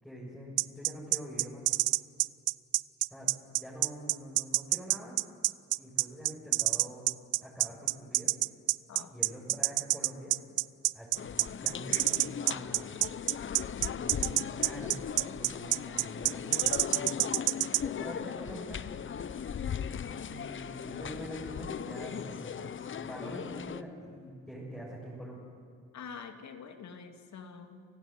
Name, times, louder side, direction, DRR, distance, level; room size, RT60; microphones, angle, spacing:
voice 1, 0.0-1.6 3.1-3.3 3.6-5.1 5.8-7.1 7.4-8.3 9.1-10.4 10.9-13.0 14.0-17.2 17.8-18.8 20.1-25.5, equal, ahead, -6 dB, 6.8 m, -45 dB
sound 1, 0.6-17.8, right 20 dB, 85° right, 0.5 m, -27 dB
sound 2, 11.2-23.8, left 7 dB, 40° left, 0.9 m, -38 dB
voice 2, 25.9-27.8, left 6 dB, 65° left, 6 dB, 2.9 m, -46 dB
29.0 x 16.0 x 9.4 m, 2.4 s
cardioid pair, 90°, 30 cm